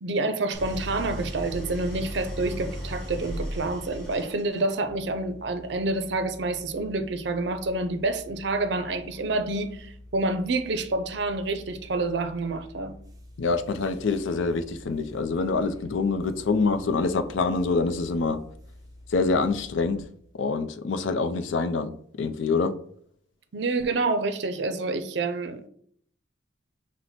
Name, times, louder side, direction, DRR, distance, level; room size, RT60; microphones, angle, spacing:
voice 1, 0.0-13.0 23.5-25.7, right 2 dB, 65° right, 0.5 m, -28 dB
Idling, 0.5-4.8, equal, 5° left, 1.6 m, -36 dB
sound 1, 4.8-20.1, left 1 dB, 20° right, 0.5 m, -48 dB
voice 2, 13.4-18.4 19.1-20.0 20.3-21.9 22.2-22.7, left 4 dB, 80° left, 0.5 m, -25 dB
5.8 x 2.1 x 4.1 m
head